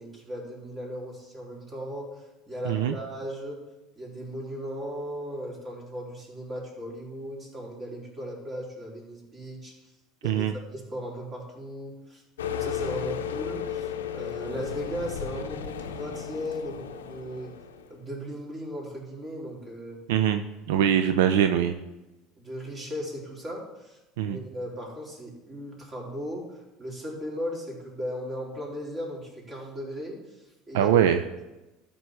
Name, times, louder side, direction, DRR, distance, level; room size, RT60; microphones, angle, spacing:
voice 1, 0.0-3.6 4.0-9.7 10.2-10.5 10.7-12.2 12.5-17.5 17.9-20.0 20.7-21.0 22.4-30.9, equal, 35° right, -3 dB, 3.9 m, -37 dB
voice 2, 2.7-3.0 10.2-10.5 20.1-21.8 24.2-24.4 30.7-31.2, right 9 dB, 75° right, 9 dB, 0.4 m, -23 dB
sound 1, 12.4-18.0, left 8 dB, 85° left, 0.6 m, -34 dB
13.0 x 5.4 x 4.8 m, 1.0 s
hypercardioid pair, 75°, 0 cm